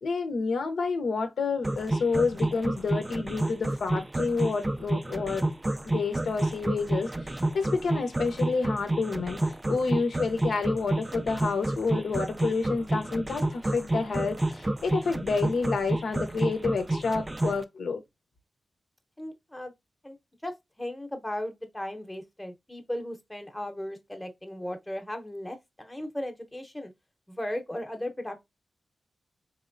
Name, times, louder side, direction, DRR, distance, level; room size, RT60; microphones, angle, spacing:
voice 1, 0.0-5.4 5.8-9.4 9.7-18.0, left 4 dB, 80° left, 0.6 m, -29 dB
sound 1, 1.6-17.6, right 2 dB, 20° right, 0.3 m, -29 dB
voice 2, 19.2-19.7 20.0-20.2 20.4-26.9 27.3-28.4, left 1 dB, 10° left, 0.8 m, -36 dB
4.1 x 3.1 x 2.5 m
wide cardioid pair, 95°, 0 cm